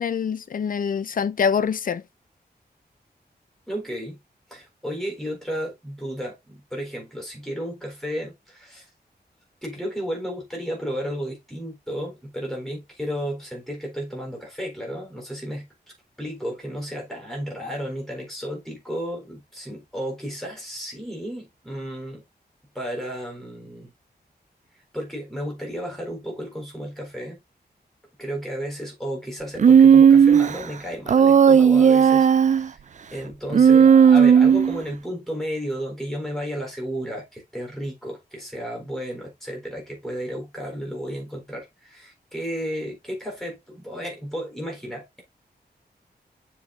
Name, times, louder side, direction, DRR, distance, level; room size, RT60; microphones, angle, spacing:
voice 1, 0.0-2.0, left 6 dB, 55° left, 0.5 m, -25 dB
voice 2, 3.7-4.2 4.5-8.9 9.6-15.7 16.2-22.2 22.7-23.9 24.9-27.4 28.2-32.8 33.1-45.2, equal, ahead, 4.3 m, -33 dB
Human voice, 29.6-30.5 31.1-32.7 33.5-34.8, right 7 dB, 45° right, 0.4 m, -14 dB
7.2 x 4.8 x 4.0 m
wide cardioid pair, 175°, 17 cm